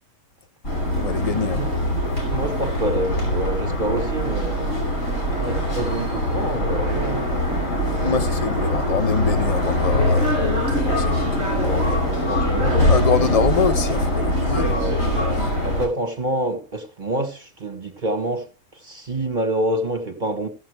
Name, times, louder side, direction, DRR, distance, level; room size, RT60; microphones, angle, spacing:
sound 1, 0.6-15.9, left 1 dB, 80° left, 6.0 m, -22 dB
voice 1, 1.0-1.6 8.0-11.8 12.9-14.8 15.4-15.6, left 6 dB, 35° left, 0.7 m, -25 dB
voice 2, 2.3-4.8 5.4-8.3 8.6-8.7 11.6-13.0 13.3-13.4 14.5-15.0 15.6-20.5, right 1 dB, 35° right, 1.4 m, -27 dB
16.0 x 7.4 x 3.4 m
omnidirectional pair, 1.4 m